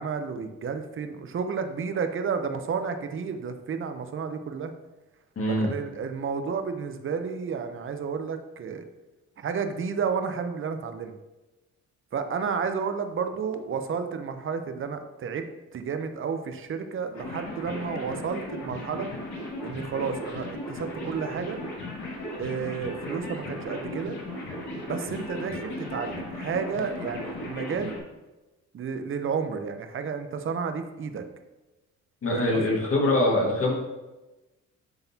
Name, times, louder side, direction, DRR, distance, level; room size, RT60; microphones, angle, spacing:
voice 1, 0.0-4.7 5.6-8.8 9.4-11.1 12.1-15.5 15.7-19.1 19.6-21.6 22.4-24.2 24.9-28.0 28.7-31.2 32.3-32.8, right 6 dB, 45° right, 8 dB, 0.7 m, -31 dB
voice 2, 5.4-5.7 32.2-33.7, left 1 dB, 45° left, -3 dB, 1.9 m, -23 dB
sound 1, 17.1-28.0, left 1 dB, 70° left, 2.2 m, -36 dB
10.5 x 3.9 x 2.8 m, 1.1 s
cardioid pair, 90°, 30 cm